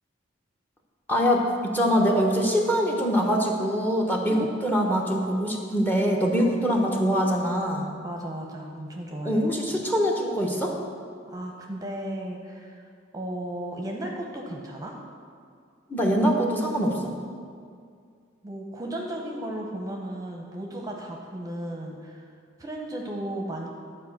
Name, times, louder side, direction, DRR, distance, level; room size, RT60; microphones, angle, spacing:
voice 1, 1.1-7.8 9.2-10.7 15.9-17.1, equal, 10° left, 1 dB, 1.1 m, -23 dB
voice 2, 8.0-9.4 11.3-15.0 18.4-22.3 22.6-23.7, right 1 dB, 20° right, 0 dB, 0.9 m, -35 dB
11.5 x 4.9 x 7.3 m, 2.2 s
head